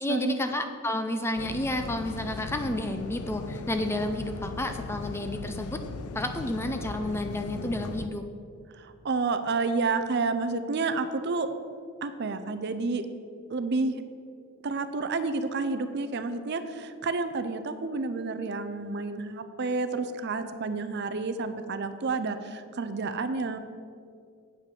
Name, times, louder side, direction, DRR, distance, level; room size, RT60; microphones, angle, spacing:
voice 1, 0.0-5.8 6.1-8.3, left 1 dB, 10° left, 6 dB, 0.4 m, -31 dB
sound 1, 1.4-8.1, left 4 dB, 85° left, 0.4 m, -38 dB
voice 2, 8.7-11.5 12.0-13.0 13.5-14.0 14.6-23.6, right 3 dB, 50° right, 10 dB, 0.5 m, -30 dB
8.4 x 5.8 x 6.7 m, 2.2 s
head